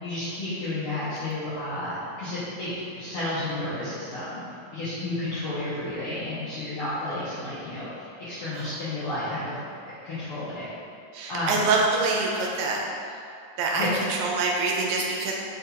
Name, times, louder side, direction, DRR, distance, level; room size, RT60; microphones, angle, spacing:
voice 1, 0.0-4.4 4.7-9.6 10.0-10.6 11.3-11.7 13.7-13.9, left 1 dB, 85° left, -12 dB, 1.2 m, -31 dB
voice 2, 11.1-12.9 13.6-15.3, right 3 dB, 90° right, -1 dB, 2.0 m, -25 dB
5.1 x 2.8 x 2.2 m, 2.4 s
omnidirectional pair, 3.3 m